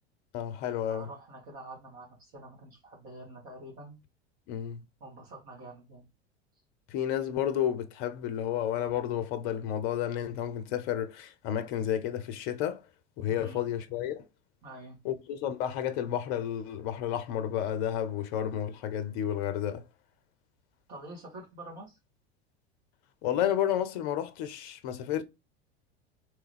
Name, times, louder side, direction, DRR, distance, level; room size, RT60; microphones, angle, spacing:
voice 1, 0.3-1.1 4.5-4.8 6.9-12.8 13.2-14.3 15.0-19.8 23.2-25.2, left 10 dB, 50° left, 0.6 m, -31 dB
voice 2, 0.9-4.0 5.0-6.1 13.3-13.7 14.6-15.0 20.9-22.0, right 1 dB, 50° right, 2.1 m, -46 dB
3.4 x 3.1 x 3.3 m
figure-of-eight pair, 75°, 33 cm